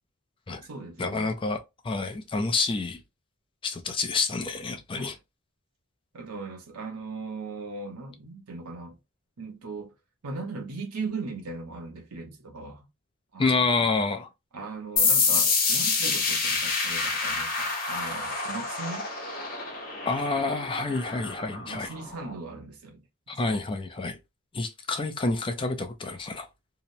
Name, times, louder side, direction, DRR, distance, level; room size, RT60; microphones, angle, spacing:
voice 1, 0.5-1.3 5.0-5.1 6.1-8.9 9.4-9.9 10.2-12.9 13.3-13.9 14.5-19.1 21.6-23.0 23.5-23.6, right 3 dB, 85° right, 0.7 m, -38 dB
voice 2, 1.0-1.6 1.8-3.0 3.6-5.1 13.4-14.3 20.1-21.9 23.3-24.2 24.5-26.5, left 3 dB, 25° left, 0.4 m, -28 dB
sound 1, 15.0-22.3, left 4 dB, 40° left, 0.9 m, -27 dB
2.8 x 2.0 x 2.6 m
head